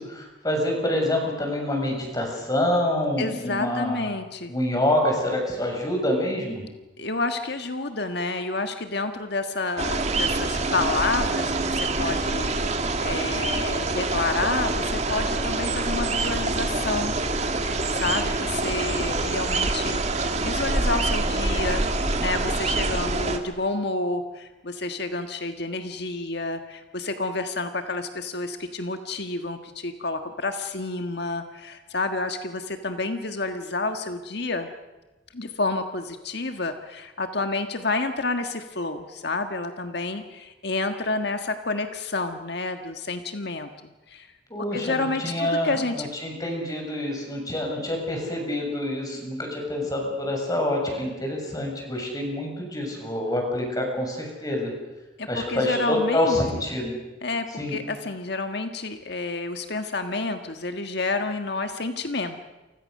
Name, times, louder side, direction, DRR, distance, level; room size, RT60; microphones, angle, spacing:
voice 1, 0.0-4.1 4.5-6.6 44.5-54.7 55.3-56.9 57.6-57.8, left 1 dB, 20° left, 1 dB, 7.0 m, -26 dB
voice 2, 3.2-4.5 7.0-17.2 17.9-34.7 35.3-43.7 44.1-44.3 44.7-46.1 55.2-56.4 57.2-62.4, left 3 dB, 60° left, 7 dB, 1.6 m, -29 dB
sound 1, 9.8-23.4, right 2 dB, 35° right, 2.2 m, -26 dB
30.0 x 25.0 x 6.7 m, 1.1 s
head